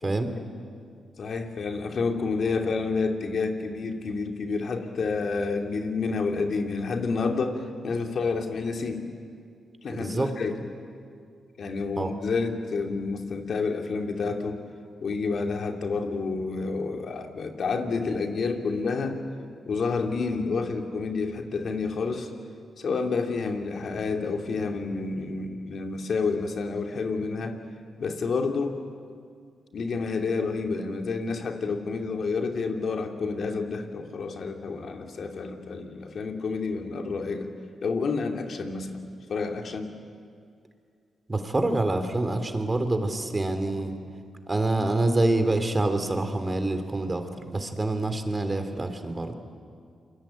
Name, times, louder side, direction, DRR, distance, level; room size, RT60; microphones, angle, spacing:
voice 1, 0.0-0.4 1.2-9.0 9.8-10.6 11.6-14.6 15.0-19.2 19.6-22.3 22.8-27.5 28.0-28.8 29.7-37.5 37.8-39.0 39.3-39.9, left 4 dB, 65° left, 4 dB, 2.8 m, -29 dB
voice 2, 9.9-10.3 12.0-12.1 41.3-44.0 44.5-49.3, right 2 dB, 30° right, 7 dB, 3.5 m, -26 dB
28.0 x 21.5 x 9.0 m, 2.3 s
supercardioid pair, 50°, 0 cm